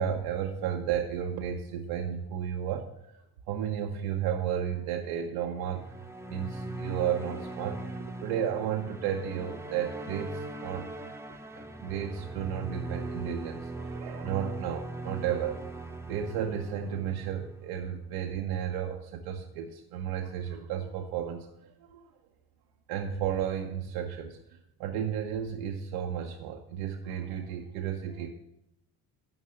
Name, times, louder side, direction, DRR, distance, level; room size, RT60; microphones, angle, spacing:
voice 1, 0.0-2.9 3.5-6.0 6.3-10.9 11.5-15.7 16.1-21.5 21.8-22.1 22.9-28.3, right 9 dB, 75° right, 2 dB, 0.8 m, -33 dB
sound 1, 5.6-18.1, right 2 dB, 5° right, 0.8 m, -40 dB
9.8 x 5.4 x 6.4 m, 0.84 s
hypercardioid pair, 50°, 49 cm